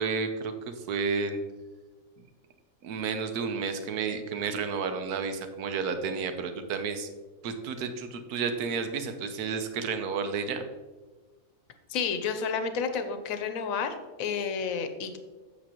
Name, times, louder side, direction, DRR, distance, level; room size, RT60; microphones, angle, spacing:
voice 1, 0.0-1.4 2.8-7.1 7.4-10.6, right 5 dB, 80° right, 8 dB, 1.3 m, -31 dB
voice 2, 11.9-15.2, left 6 dB, 65° left, 8 dB, 1.1 m, -31 dB
8.5 x 6.8 x 2.9 m, 1.3 s
omnidirectional pair, 1.6 m